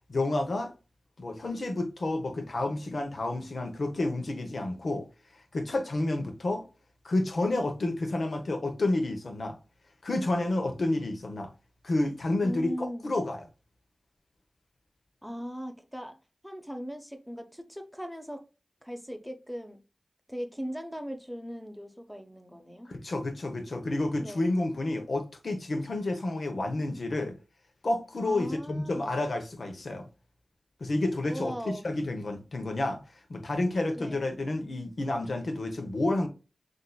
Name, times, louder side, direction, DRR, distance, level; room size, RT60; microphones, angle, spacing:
voice 1, 0.1-0.7 1.2-5.1 5.5-6.6 7.0-9.6 10.0-11.5 11.8-13.4 22.9-27.3 27.8-30.1 30.8-33.0 33.3-36.3, left 2 dB, 65° left, 0.9 m, -30 dB
voice 2, 12.4-13.1 15.2-16.2 16.4-18.4 18.8-19.8 20.3-22.9 24.2-24.5 28.2-29.2 31.3-31.9 33.9-34.2, equal, ahead, 1.0 m, -39 dB
6.3 x 2.7 x 2.3 m
cardioid pair, 40°, 0 cm